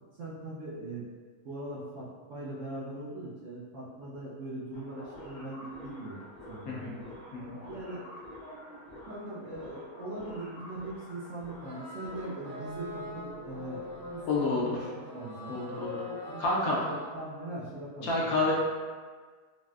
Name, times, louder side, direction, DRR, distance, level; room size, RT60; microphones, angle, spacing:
voice 1, 0.2-1.1 1.4-7.0 7.7-8.0 9.1-13.9 14.1-18.5, right 1 dB, 65° right, -8 dB, 0.8 m, -41 dB
sound 1, 4.7-14.4, left 1 dB, 50° left, 0.6 m, -48 dB
sound 2, 11.6-17.1, left 1 dB, 85° right, 1.3 m, -43 dB
voice 2, 14.3-14.7 15.5-16.0 16.4-16.8 18.0-18.5, left 3 dB, 70° left, -5 dB, 1.0 m, -29 dB
4.0 x 2.0 x 2.3 m, 1.5 s
omnidirectional pair, 1.6 m